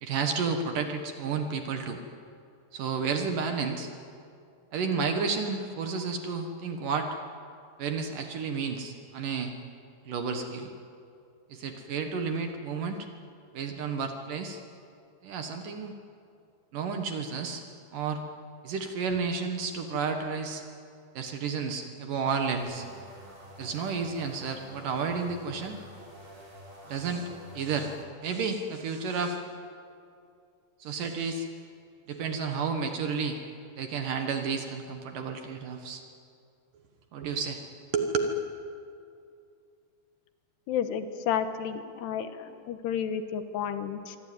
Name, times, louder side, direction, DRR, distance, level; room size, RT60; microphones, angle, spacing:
voice 1, 0.0-2.0 2.7-3.9 4.7-7.1 7.8-9.5 10.0-10.7 11.5-13.1 13.5-14.6 15.2-15.9 16.7-17.6 17.9-18.2 18.6-20.6 21.1-22.9 23.6-25.8 26.9-27.3 27.5-27.9 28.2-29.4 30.8-31.5 32.1-33.4 33.8-36.0 37.1-37.6 37.9-38.3, right 5 dB, 60° right, 5 dB, 2.6 m, -31 dB
sound 1, 22.5-28.1, equal, 20° right, 5.0 m, -48 dB
voice 2, 40.7-44.2, left 8 dB, 80° left, 9 dB, 3.2 m, -31 dB
24.5 x 24.5 x 9.4 m, 2.5 s
omnidirectional pair, 4.9 m